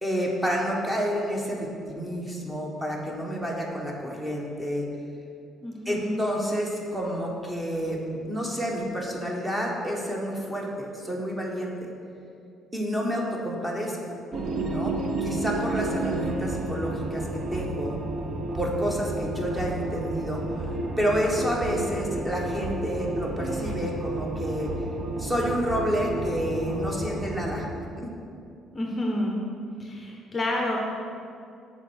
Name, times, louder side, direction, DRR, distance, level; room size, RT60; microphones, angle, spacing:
voice 1, 0.0-4.9 5.8-11.9 12.7-14.2 14.6-18.0 18.5-20.4 21.0-24.7 25.2-27.7 28.0-28.1, equal, 10° right, -1 dB, 1.1 m, -29 dB
voice 2, 5.6-6.2 28.7-29.3 29.8-30.8, left 1 dB, 20° left, 0 dB, 0.7 m, -29 dB
sound 1, 14.3-27.5, right 2 dB, 40° right, 0.6 m, -31 dB
7.2 x 4.2 x 6.2 m, 2.5 s
cardioid pair, 145°, 0 cm